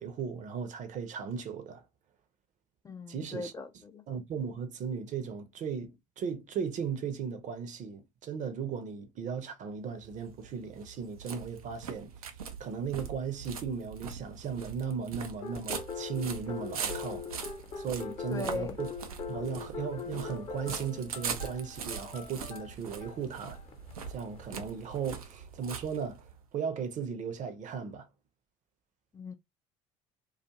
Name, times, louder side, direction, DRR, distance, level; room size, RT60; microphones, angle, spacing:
voice 1, 0.0-1.8 3.1-3.5 4.1-12.1 12.6-17.3 17.8-18.9 19.3-23.6 24.1-28.1, right 6 dB, 45° right, 0.7 m, -36 dB
voice 2, 2.8-4.0 18.3-18.8 29.1-29.3, left 3 dB, 20° left, 0.4 m, -38 dB
sound 1, 9.9-26.4, right 6 dB, 85° right, 0.5 m, -42 dB
sound 2, 15.4-25.2, left 6 dB, 35° left, 0.8 m, -42 dB
2.4 x 2.4 x 2.7 m
hypercardioid pair, 60°, 18 cm